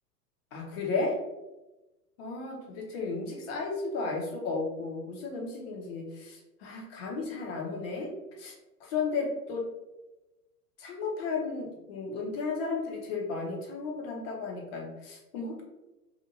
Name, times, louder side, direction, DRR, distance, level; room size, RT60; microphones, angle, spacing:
voice 1, 0.5-1.1 2.2-8.1 8.4-8.5 8.8-9.6 10.8-15.6, left 4 dB, 40° left, 0 dB, 0.7 m, -34 dB
2.7 x 2.5 x 2.7 m, 1.0 s
figure-of-eight pair, 100°, 48 cm